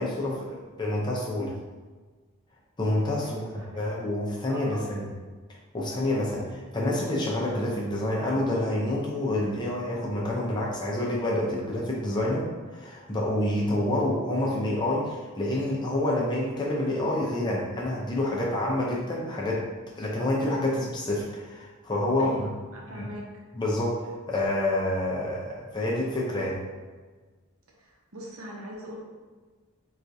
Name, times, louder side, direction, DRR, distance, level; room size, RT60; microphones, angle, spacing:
voice 1, 0.0-1.6 2.8-5.1 5.7-19.6 20.0-22.5 22.9-23.1 23.5-26.6, left 1 dB, 20° left, -3 dB, 0.5 m, -28 dB
voice 2, 3.2-3.9 4.5-4.9 22.2-23.3 27.8-29.0, equal, 75° right, -2 dB, 0.7 m, -41 dB
4.2 x 2.3 x 2.6 m, 1.4 s
head